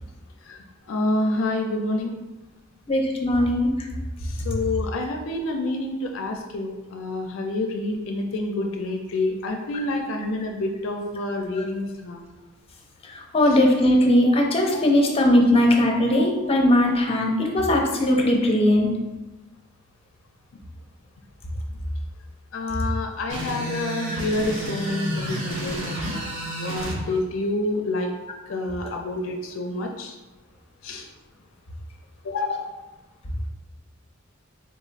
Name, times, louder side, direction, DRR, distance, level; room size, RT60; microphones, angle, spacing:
voice 1, 0.9-2.1 3.4-3.5 4.3-12.2 13.4-13.6 15.9-16.2 17.1-17.2 22.5-26.3 26.6-28.1 28.5-30.1 30.8-31.0 32.2-32.7, left 2 dB, 70° left, 3 dB, 0.4 m, -28 dB
voice 2, 2.9-3.7 11.5-11.6 13.3-18.9, left 1 dB, 30° left, 0 dB, 0.6 m, -19 dB
sound 1, 23.3-27.0, right 1 dB, 80° right, 1.5 m, -30 dB
3.8 x 2.4 x 3.9 m, 1.1 s
head